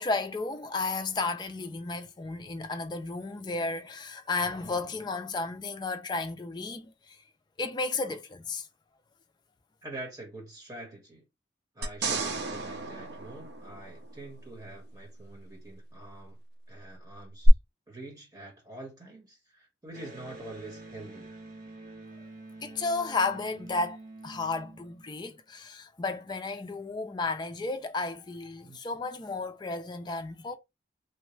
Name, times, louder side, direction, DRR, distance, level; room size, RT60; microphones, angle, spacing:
voice 1, 0.0-7.2 7.6-8.7 22.6-24.0 24.2-30.6, left 3 dB, 25° left, 0.4 m, -33 dB
voice 2, 9.8-11.2 11.7-16.4 16.7-17.5 17.9-21.3 28.6-28.8, right 2 dB, 20° right, 1.4 m, -45 dB
sound 1, 11.8-14.3 17.4-17.5, right 3 dB, 70° right, 0.7 m, -33 dB
Electric guitar, 19.9-25.4, right 2 dB, 50° right, 1.2 m, -47 dB
3.0 x 2.3 x 3.1 m
head